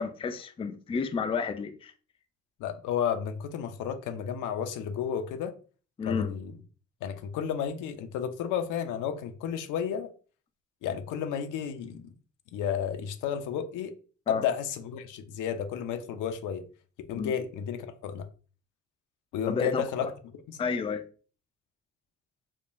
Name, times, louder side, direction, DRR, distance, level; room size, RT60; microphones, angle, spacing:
voice 1, 0.0-1.9 6.0-6.3 14.3-14.4 17.1-17.3 19.5-20.1 20.6-21.0, left 5 dB, 20° left, 0.3 m, -31 dB
voice 2, 2.6-5.5 6.1-6.5 7.0-10.1 10.8-12.1 12.5-13.9 14.3-16.6 17.1-18.3 19.3-20.1 20.5-20.6, left 8 dB, 85° left, 0.5 m, -32 dB
3.6 x 2.2 x 2.5 m
cardioid pair, 90°, 30 cm